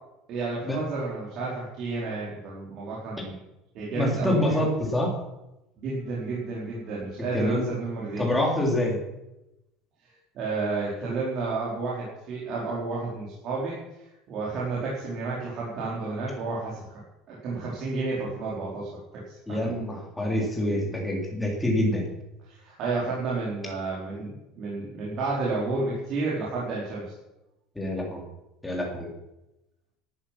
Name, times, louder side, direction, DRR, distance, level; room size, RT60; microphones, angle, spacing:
voice 1, 0.3-3.4 3.7-4.6 5.8-8.2 10.3-13.8 14.3-16.8 17.3-18.9 19.3-19.8 22.5-27.0, right 3 dB, 40° right, -6 dB, 4.5 m, -31 dB
voice 2, 3.9-5.1 7.3-7.7 8.2-9.0 19.5-22.1 27.7-28.2 28.6-29.1, left 1 dB, 5° left, -1 dB, 3.5 m, -26 dB
17.0 x 12.5 x 6.1 m, 0.93 s
cardioid pair, 180°, 0 cm